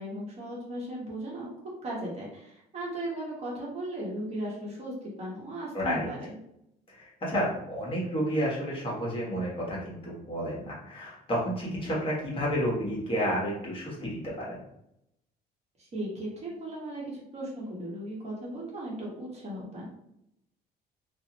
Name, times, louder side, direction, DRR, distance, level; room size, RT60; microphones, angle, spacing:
voice 1, 0.0-1.5 1.8-6.2 15.8-19.9, right 1 dB, 40° right, -5 dB, 1.2 m, -37 dB
voice 2, 5.7-6.1 6.9-14.6, equal, 30° left, -4 dB, 1.1 m, -31 dB
2.5 x 2.4 x 2.9 m, 0.78 s
cardioid pair, 110°, 17 cm